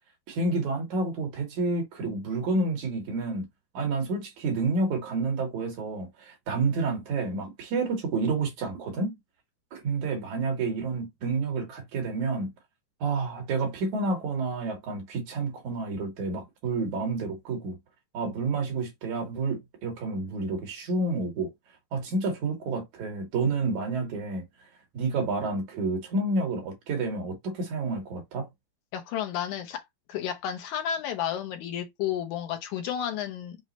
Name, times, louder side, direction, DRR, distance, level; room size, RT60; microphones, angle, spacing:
voice 1, 0.3-3.5 3.7-9.2 9.7-12.5 13.0-17.8 18.1-21.5 21.9-24.4 24.9-28.5, right 3 dB, 65° right, 2.7 m, -29 dB
voice 2, 28.9-29.8 30.1-33.6, left 10 dB, 80° left, 1.9 m, -32 dB
6.2 x 2.1 x 3.9 m
omnidirectional pair, 3.7 m